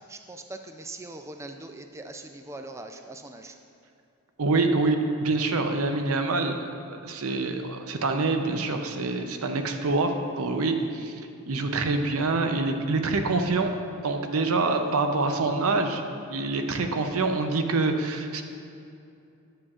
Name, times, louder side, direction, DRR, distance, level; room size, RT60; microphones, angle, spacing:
voice 1, 0.0-3.6, right 2 dB, 15° right, 6 dB, 0.3 m, -41 dB
voice 2, 4.4-11.2 11.5-13.7 14.0-16.0 16.3-18.4, right 3 dB, 70° right, 6 dB, 0.6 m, -26 dB
10.0 x 7.6 x 2.4 m, 2.6 s
head